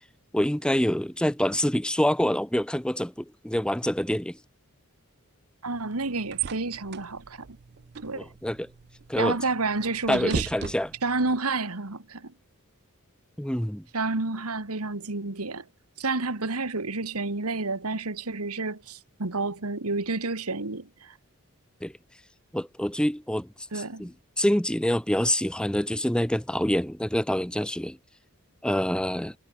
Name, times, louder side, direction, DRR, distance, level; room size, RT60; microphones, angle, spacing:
voice 1, 0.3-4.4 8.1-8.7 9.1-9.4 10.1-10.9 13.4-13.8 21.8-21.9 22.5-23.5 23.7-28.0 28.6-29.3, equal, 5° left, 0.8 m, -26 dB
voice 2, 5.6-7.4 8.0-8.3 9.2-10.5 11.0-12.3 13.9-15.6 16.0-21.1 23.7-24.1, right 3 dB, 80° right, 2.0 m, -30 dB
sound 1, 5.7-11.4, right 6 dB, 50° right, 0.5 m, -38 dB
head